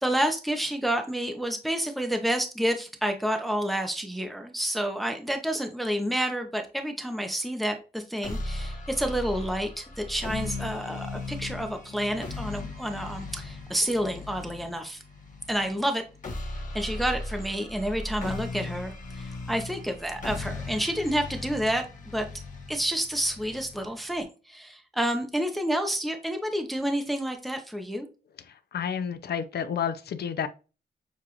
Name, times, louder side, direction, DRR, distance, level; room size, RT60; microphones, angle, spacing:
voice 1, 0.0-15.0 15.5-16.0 16.7-22.3 22.7-28.1, right 1 dB, ahead, 0.7 m, -29 dB
sound 1, 8.2-24.2, left 2 dB, 50° left, 1.3 m, -37 dB
voice 2, 28.7-30.5, left 8 dB, 70° left, 0.6 m, -30 dB
6.8 x 2.5 x 2.9 m
wide cardioid pair, 150°, 17 cm